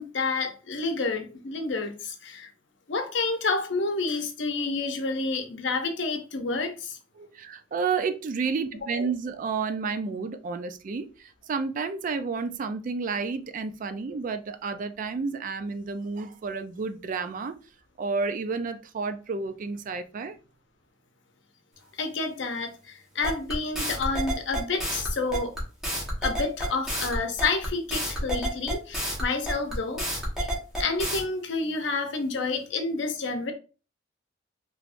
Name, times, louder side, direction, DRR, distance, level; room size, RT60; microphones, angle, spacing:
voice 1, 0.0-2.5 2.9-7.0 22.0-25.6 26.2-30.0 30.4-30.5 30.8-33.5, left 3 dB, 65° left, 0.7 m, -29 dB
voice 2, 7.2-17.6 18.0-20.4, right 4 dB, 45° right, 0.3 m, -31 dB
sound 1, 23.2-31.2, equal, ahead, 1.2 m, -29 dB
3.5 x 3.0 x 2.5 m
head